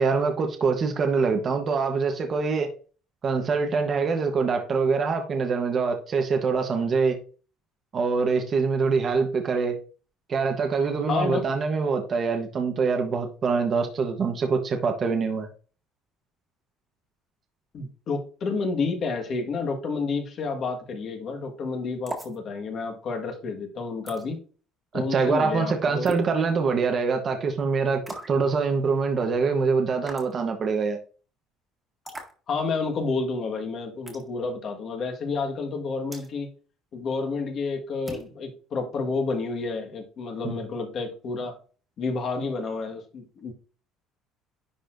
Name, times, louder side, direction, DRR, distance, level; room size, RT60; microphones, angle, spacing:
voice 1, 0.0-2.7 3.2-7.2 7.9-9.8 10.3-15.5 24.9-28.0 28.3-31.0 40.4-40.6, right 5 dB, 35° right, 1.0 m, -24 dB
voice 2, 11.1-11.5 17.7-24.4 24.9-26.1 32.5-36.5 36.9-41.5 42.0-43.5, left 4 dB, 45° left, 1.5 m, -30 dB
sound 1, 22.1-22.4 24.1-24.2 26.1-26.3 28.1-28.4 30.1-30.3 32.1-32.3 34.1-34.3 36.1-36.3 38.1-38.3, right 1 dB, 10° right, 1.7 m, -37 dB
10.5 x 4.2 x 2.5 m
cardioid pair, 140°, 0 cm